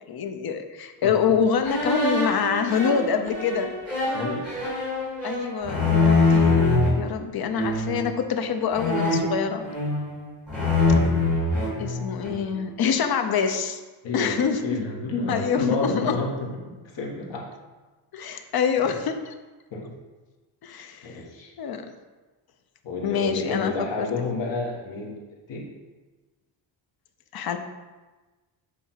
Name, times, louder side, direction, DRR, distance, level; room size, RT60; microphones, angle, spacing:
voice 1, 0.1-3.7 5.2-9.7 11.8-13.8 14.1-14.9 15.3-16.2 18.1-19.3 20.6-21.2 21.6-21.9 23.0-23.7 27.3-27.6, left 6 dB, 55° left, 7 dB, 0.7 m, -26 dB
sound 1, 1.6-6.9 7.5-8.1 8.7-10.2 10.5-12.5, left 3 dB, ahead, 2.6 m, -23 dB
voice 2, 4.1-4.5 14.0-14.4 14.6-17.5 18.2-18.4 18.8-19.0 19.7-20.0 21.0-21.5 22.8-25.2 25.5-25.7, left 3 dB, 70° left, -2 dB, 1.8 m, -30 dB
8.5 x 3.5 x 5.7 m, 1.2 s
wide cardioid pair, 175°, 45 cm